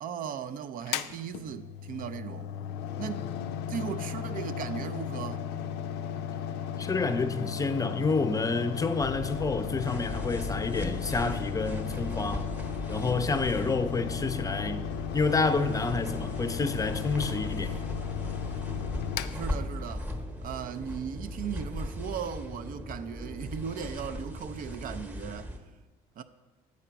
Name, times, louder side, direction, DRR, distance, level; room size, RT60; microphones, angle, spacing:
voice 1, 0.0-2.5 3.0-3.3 3.7-5.5 19.3-20.1 20.4-25.5 26.2-26.3, right 8 dB, 55° right, 0.5 m, -37 dB
Mechanical fan, 0.8-20.2, left 9 dB, 85° left, 0.4 m, -35 dB
voice 2, 6.8-12.5 12.9-17.7, left 3 dB, 20° left, 0.5 m, -29 dB
sound 1, 9.0-25.6, left 1 dB, 10° right, 0.9 m, -38 dB
8.1 x 4.9 x 5.7 m
cardioid pair, 110°, 17 cm